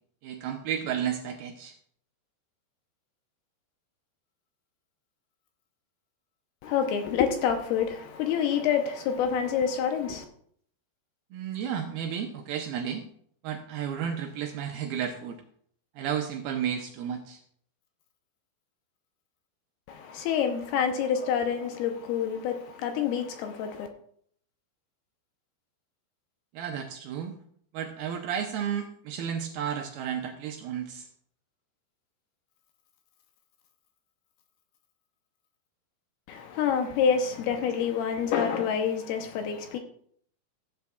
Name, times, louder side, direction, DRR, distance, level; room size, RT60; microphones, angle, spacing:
voice 1, 0.2-1.8 11.3-13.0 13.4-15.4 16.0-17.4 26.5-27.3 27.7-31.1 37.6-37.7, right 8 dB, 80° right, 2.3 m, -32 dB
voice 2, 6.6-10.3 19.9-23.9 36.3-39.8, left 7 dB, 80° left, 2.5 m, -27 dB
15.5 x 8.1 x 2.3 m
omnidirectional pair, 4.9 m